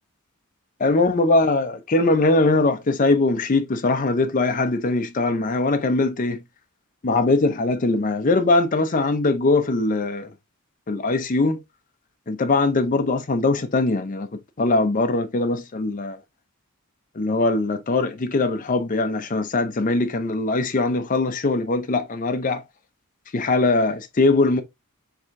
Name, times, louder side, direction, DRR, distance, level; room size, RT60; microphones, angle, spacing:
voice 1, 0.8-6.4 7.0-10.3 10.9-11.6 12.3-14.3 14.6-16.2 17.2-22.6 23.3-24.6, left 2 dB, 35° left, 0.5 m, -21 dB
4.7 x 3.5 x 2.5 m
head